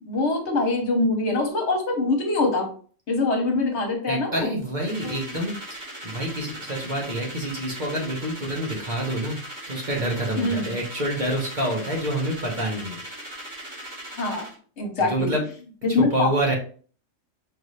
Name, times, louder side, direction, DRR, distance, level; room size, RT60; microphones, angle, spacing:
voice 1, 0.0-2.7 3.1-4.5 5.0-5.2 10.4-10.7 14.1-14.5 14.8-15.3 15.8-16.3, left 2 dB, 65° left, 3 dB, 1.2 m, -24 dB
voice 2, 4.1-9.4 9.7-13.0 15.1-15.4 16.0-16.5, right 1 dB, 40° right, -2 dB, 1.0 m, -27 dB
sound 1, 4.8-14.5, right 1 dB, 60° right, 2.7 m, -39 dB
4.6 x 2.7 x 3.2 m, 0.43 s
omnidirectional pair, 1.3 m